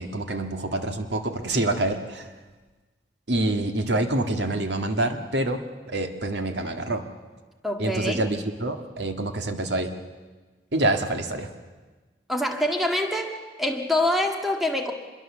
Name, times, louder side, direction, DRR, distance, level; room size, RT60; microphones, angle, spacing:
voice 1, 0.0-2.3 3.3-5.6 5.9-7.0 7.8-9.9 10.7-11.5, right 2 dB, 85° right, 6 dB, 1.9 m, -26 dB
voice 2, 7.6-8.2 12.3-13.3 13.6-14.9, left 1 dB, ahead, 3 dB, 1.8 m, -25 dB
26.0 x 22.0 x 7.4 m, 1.3 s
head